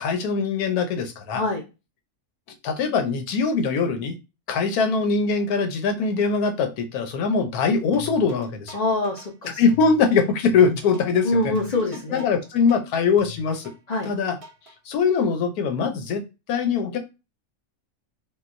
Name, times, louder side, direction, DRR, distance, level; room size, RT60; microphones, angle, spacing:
voice 1, 0.0-1.4 2.6-4.1 4.5-8.7 9.6-11.5 12.1-13.7 14.0-14.4 14.9-16.2 16.5-17.0, left 5 dB, 85° left, 6 dB, 1.1 m, -22 dB
voice 2, 1.3-1.6 8.7-9.6 11.2-12.2 13.9-14.1, left 2 dB, 55° left, 0 dB, 0.4 m, -25 dB
sound 1, 7.9-14.7, left 4 dB, 60° right, 0.8 m, -43 dB
3.7 x 2.3 x 2.5 m, 0.28 s
omnidirectional pair, 1.6 m